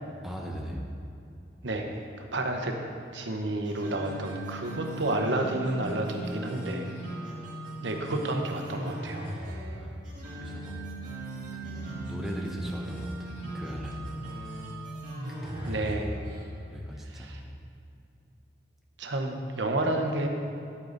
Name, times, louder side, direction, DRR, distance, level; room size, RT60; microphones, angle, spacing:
voice 1, 0.2-0.8 9.8-9.9 10.3-10.8 11.5-14.1 15.4-16.0 16.7-17.3, equal, ahead, -1 dB, 0.9 m, -38 dB
voice 2, 2.3-2.8 3.1-6.9 7.8-9.2 15.6-16.2 17.1-17.4 19.0-20.3, right 1 dB, 80° right, 3 dB, 1.0 m, -30 dB
sound 1, 3.6-16.5, right 1 dB, 45° right, 2.1 m, -38 dB
10.5 x 8.4 x 4.0 m, 2.6 s
head